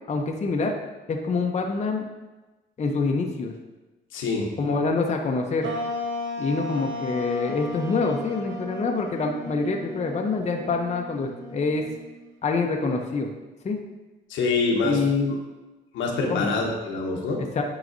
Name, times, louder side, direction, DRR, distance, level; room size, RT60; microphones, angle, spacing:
voice 1, 0.1-0.7 1.1-2.1 2.8-3.5 4.6-5.7 6.4-11.8 12.4-13.3 13.6-13.8 14.8-15.4 16.3-16.5 17.4-17.6, left 4 dB, 35° left, 2 dB, 0.6 m, -26 dB
voice 2, 4.1-4.5 14.3-15.0 15.9-17.4, left 3 dB, 80° left, 0 dB, 1.1 m, -25 dB
sound 1, 5.6-12.3, left 1 dB, 70° right, 0.9 m, -35 dB
9.1 x 4.0 x 2.6 m, 1.1 s
cardioid pair, 90°, 20 cm